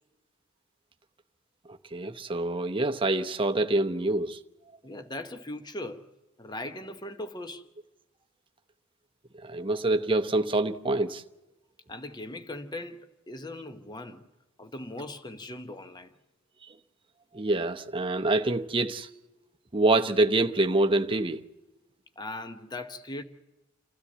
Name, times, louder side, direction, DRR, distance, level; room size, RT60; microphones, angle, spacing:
voice 1, 1.9-4.4 9.4-11.2 17.3-19.1 19.7-21.4, right 2 dB, 25° right, 0.7 m, -26 dB
voice 2, 4.8-6.0 6.4-7.7 11.9-14.3 14.6-16.1 22.2-23.2, left 1 dB, 20° left, 1.0 m, -39 dB
29.0 x 13.0 x 7.3 m
head